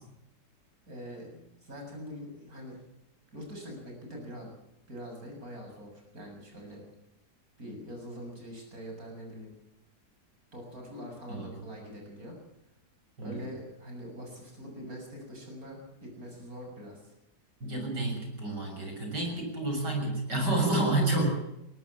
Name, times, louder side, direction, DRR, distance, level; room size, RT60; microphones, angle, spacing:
voice 1, 0.9-2.8 3.3-4.5 4.9-6.8 7.6-9.5 10.5-12.3 13.2-17.1 21.0-21.2, equal, 55° right, 1 dB, 7.9 m, -43 dB
voice 2, 17.6-21.3, right 2 dB, 80° right, 4 dB, 7.4 m, -29 dB
21.0 x 18.0 x 7.3 m, 0.85 s
omnidirectional pair, 1.8 m